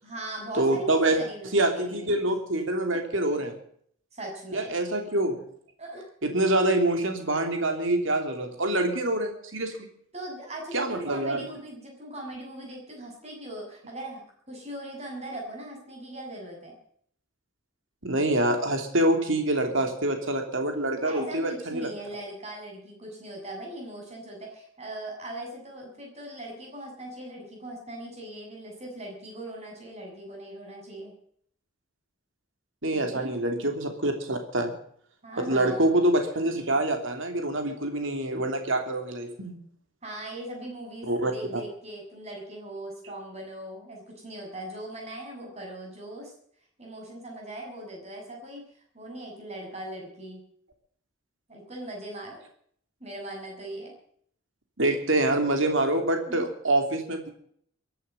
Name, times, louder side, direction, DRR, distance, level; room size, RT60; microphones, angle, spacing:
voice 1, 0.0-2.3 4.1-4.7 5.8-6.1 10.1-14.2 14.5-16.8 21.0-31.1 32.9-33.4 35.2-36.0 40.0-46.3 46.8-48.6 48.9-50.4 51.5-52.4 53.0-53.9 56.3-56.5, right 1 dB, 30° right, 1 dB, 7.1 m, -40 dB
voice 2, 0.6-1.2 1.5-3.5 4.5-5.3 6.2-9.8 10.7-11.4 18.0-21.9 32.8-34.7 35.4-39.5 41.1-41.3 54.8-57.3, right 1 dB, 65° right, 5 dB, 3.0 m, -26 dB
23.0 x 11.5 x 5.4 m, 0.63 s
head